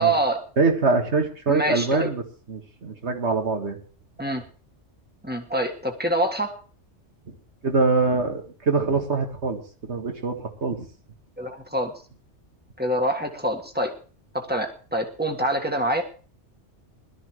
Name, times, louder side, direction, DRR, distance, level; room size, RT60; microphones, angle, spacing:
voice 1, 0.0-0.4 1.5-2.1 4.2-4.4 5.2-6.5 11.4-11.9 12.8-13.9 14.3-16.0, right 1 dB, 10° right, 3 dB, 1.7 m, -25 dB
voice 2, 0.6-2.2 2.5-3.8 7.6-10.9, right 3 dB, 70° right, 4 dB, 2.2 m, -24 dB
21.0 x 12.5 x 3.2 m, 0.38 s
omnidirectional pair, 1.2 m